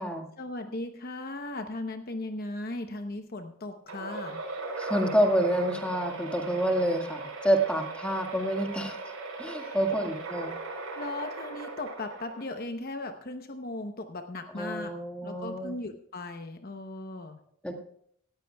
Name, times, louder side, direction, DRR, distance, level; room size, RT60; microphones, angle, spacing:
voice 1, 0.4-4.4 9.5-10.1 10.9-14.9 15.2-17.4, left 2 dB, 45° left, 6 dB, 0.8 m, -37 dB
sound 1, 3.9-12.6, right 3 dB, 85° right, 5.3 m, -38 dB
voice 2, 4.8-9.0 9.4-10.5 14.5-15.7 17.6-17.7, right 1 dB, 5° left, 2 dB, 1.7 m, -28 dB
18.0 x 14.0 x 2.3 m, 0.69 s
head